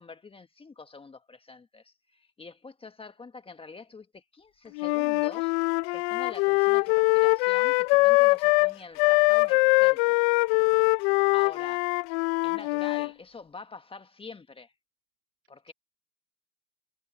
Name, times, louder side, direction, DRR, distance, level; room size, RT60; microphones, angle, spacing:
voice 1, 0.0-5.5 5.9-10.1 11.3-11.9 12.4-14.7 15.5-15.7, left 4 dB, 10° left, 1.6 m, -46 dB
Wind instrument woodwind instrument, 4.8-13.1, left 28 dB, 40° left, 0.9 m, -23 dB
voice 2, 10.5-11.4, right 15 dB, 35° right, 2.1 m, -57 dB
hypercardioid pair, 115°, 46 cm